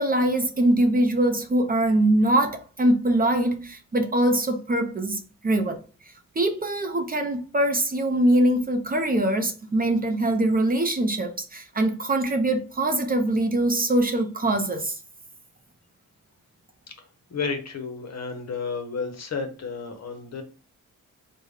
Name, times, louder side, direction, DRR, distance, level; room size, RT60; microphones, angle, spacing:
voice 1, 0.0-5.8 6.0-15.0, right 1 dB, 25° right, 0.5 m, -23 dB
voice 2, 17.3-20.4, left 5 dB, 50° left, 0.8 m, -32 dB
3.4 x 2.2 x 3.2 m
cardioid pair, 90°, 33 cm